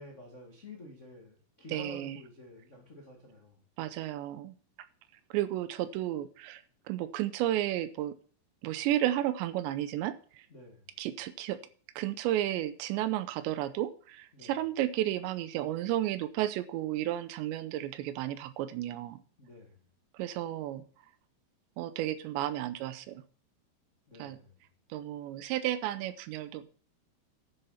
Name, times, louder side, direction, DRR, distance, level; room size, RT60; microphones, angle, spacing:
voice 1, 0.0-3.6 10.5-10.8 14.3-14.5 19.4-19.9 24.1-24.5, left 1 dB, 55° left, 0 dB, 0.8 m, -50 dB
voice 2, 1.7-2.2 3.8-4.6 5.3-8.2 8.6-10.5 11.0-11.6 12.0-19.2 20.1-20.8 21.8-23.2 24.2-24.4 24.9-26.7, right 13 dB, 80° right, 14 dB, 2.8 m, -33 dB
10.5 x 7.3 x 5.7 m, 0.43 s
omnidirectional pair, 5.3 m